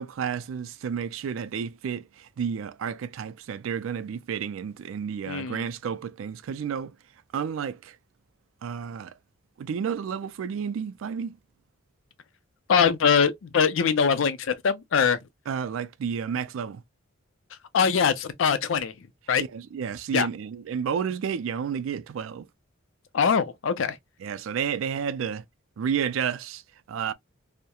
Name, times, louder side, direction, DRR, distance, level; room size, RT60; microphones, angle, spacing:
voice 1, 0.0-7.0 7.3-8.0 8.6-9.2 9.6-11.4 15.5-16.8 19.4-22.5 24.2-25.4 25.8-26.6 26.9-27.1, right 7 dB, 85° right, 0.3 m, -31 dB
voice 2, 5.3-5.7 12.7-15.2 17.7-19.4 20.1-20.3 23.1-24.0, left 6 dB, 70° left, 0.4 m, -23 dB
2.8 x 2.0 x 2.2 m
head